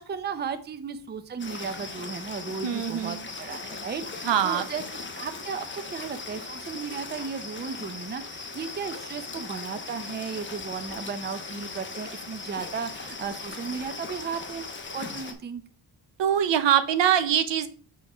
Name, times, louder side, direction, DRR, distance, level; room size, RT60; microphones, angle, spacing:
voice 1, 0.0-4.8 5.1-14.6 14.9-15.6, right 6 dB, 25° right, 10 dB, 0.5 m, -35 dB
sound 1, 1.4-15.3, left 4 dB, 25° left, 0.9 m, -39 dB
voice 2, 2.6-3.3 4.2-4.6 16.2-17.7, right 9 dB, 75° right, 12 dB, 0.8 m, -23 dB
5.3 x 3.6 x 5.4 m, 0.41 s
wide cardioid pair, 135°, 44 cm